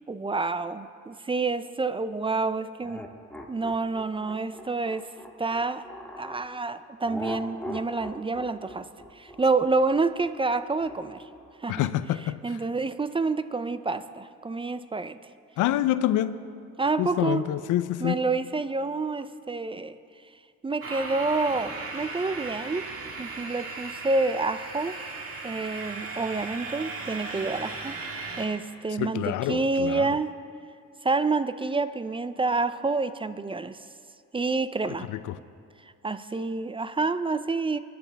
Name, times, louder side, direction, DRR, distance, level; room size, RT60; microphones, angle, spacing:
voice 1, 0.1-3.0 3.5-5.1 5.4-5.8 6.2-8.8 9.1-11.2 11.6-11.9 12.4-15.2 16.8-17.4 18.0-20.0 20.6-22.9 23.2-25.0 25.4-30.3 31.0-33.8 34.3-35.1 36.0-37.8, right 3 dB, 20° right, 13 dB, 0.4 m, -28 dB
sound 1, 2.8-6.4 7.1-11.6, left 1 dB, 5° left, 1.6 m, -41 dB
voice 2, 11.7-12.4 15.6-16.4 17.0-18.2 29.0-30.1 34.8-35.4, left 13 dB, 85° left, 14 dB, 0.6 m, -27 dB
sound 2, 20.8-28.4, right 3 dB, 50° right, 1.9 m, -37 dB
21.5 x 10.5 x 3.4 m, 2.3 s
cardioid pair, 90°, 30 cm